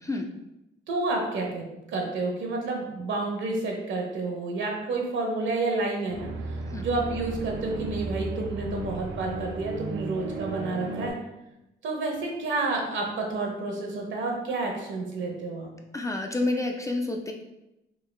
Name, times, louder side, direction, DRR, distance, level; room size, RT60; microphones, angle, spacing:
voice 1, 0.9-1.6 1.9-11.2 11.8-15.7, right 3 dB, 70° right, 1 dB, 1.0 m, -30 dB
sound 1, 6.1-11.1, right 3 dB, 85° right, 0.5 m, -35 dB
voice 2, 15.9-17.3, left 2 dB, 15° left, 2 dB, 0.3 m, -28 dB
3.6 x 2.3 x 3.3 m, 0.92 s
cardioid pair, 90°, 20 cm